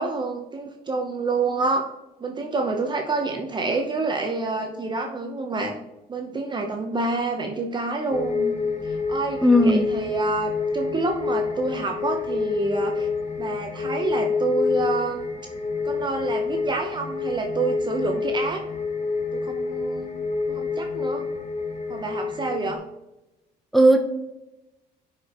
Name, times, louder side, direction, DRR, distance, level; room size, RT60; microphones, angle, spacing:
voice 1, 0.0-1.8 2.2-5.8 6.1-8.5 8.8-13.1 13.4-15.3 15.8-18.6 19.3-20.1 20.5-21.3 21.9-22.8, right 3 dB, 25° right, 3 dB, 0.9 m, -28 dB
sound 1, 8.1-22.7, left 4 dB, 40° left, 1.2 m, -28 dB
voice 2, 9.4-9.9 23.7-24.0, equal, ahead, 4 dB, 0.8 m, -16 dB
11.0 x 5.0 x 3.0 m, 0.99 s
cardioid pair, 110°, 17 cm